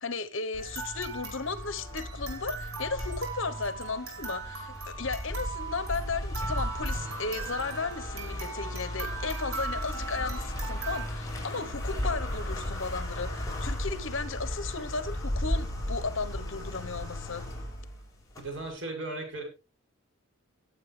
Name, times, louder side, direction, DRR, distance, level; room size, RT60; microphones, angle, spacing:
voice 1, 0.0-17.4, left 4 dB, 60° left, 1.2 m, -35 dB
sound 1, 0.5-18.7, left 1 dB, 15° left, 5.4 m, -36 dB
sound 2, 0.6-11.1, right 5 dB, 75° right, 5.3 m, -40 dB
voice 2, 18.4-19.4, right 2 dB, 60° right, 7.3 m, -36 dB
19.5 x 8.7 x 3.4 m
head